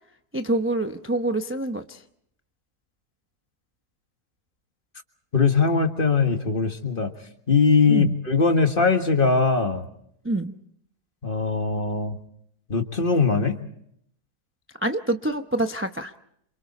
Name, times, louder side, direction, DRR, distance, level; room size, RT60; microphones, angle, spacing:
voice 1, 0.3-2.0 7.9-8.1 10.2-10.5 14.8-16.1, right 1 dB, 10° right, 6 dB, 0.6 m, -26 dB
voice 2, 5.3-7.1 7.5-9.8 11.2-12.1 12.7-13.6, left 4 dB, 35° left, 5 dB, 1.8 m, -21 dB
28.5 x 27.0 x 4.2 m, 0.71 s
omnidirectional pair, 1.7 m